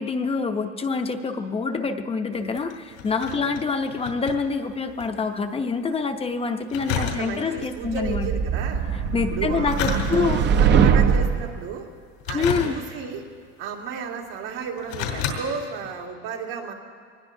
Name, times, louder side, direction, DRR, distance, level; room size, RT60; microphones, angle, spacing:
voice 1, 0.0-8.3 9.1-10.4 12.3-12.8, left 4 dB, 20° left, 6 dB, 0.7 m, -26 dB
sound 1, 2.3-5.1 5.4-5.5 6.7-7.7 9.4-10.6 11.1-11.5 12.2-13.1 13.9-14.0 14.6-15.4 15.8-15.9, left 7 dB, 85° left, 3.3 m, -31 dB
voice 2, 6.9-8.8 9.3-11.9 12.3-13.2 13.6-16.7, right 5 dB, 85° right, -1 dB, 2.4 m, -33 dB
sound 2, 7.8-11.5, right 7 dB, 35° right, 0.6 m, -21 dB
24.0 x 19.5 x 2.7 m, 2.2 s
cardioid pair, 135°, 33 cm